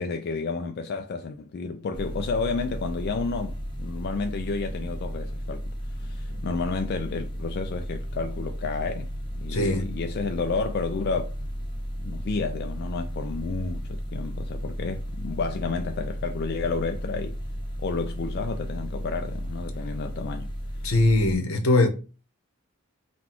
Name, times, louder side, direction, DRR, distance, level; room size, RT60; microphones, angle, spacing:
voice 1, 0.0-5.7 6.0-11.3 12.0-17.3 17.8-20.5, left 4 dB, 50° left, 0.3 m, -31 dB
sound 1, 1.9-21.3, equal, 20° left, 0.7 m, -34 dB
voice 2, 9.5-9.9 20.8-21.9, left 2 dB, 75° left, 0.9 m, -21 dB
4.0 x 2.3 x 4.4 m
head